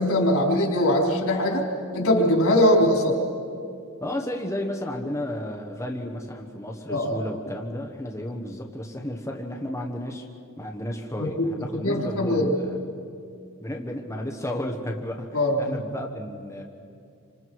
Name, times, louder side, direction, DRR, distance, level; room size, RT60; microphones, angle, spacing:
voice 1, 0.0-1.7 1.9-3.2 6.9-7.3 11.2-12.5 15.3-15.8, left 1 dB, 75° left, -1 dB, 4.2 m, -22 dB
voice 2, 4.0-10.3 10.6-12.8 13.6-16.6, left 1 dB, 15° left, 1 dB, 1.2 m, -33 dB
28.0 x 26.0 x 4.8 m, 2.4 s
head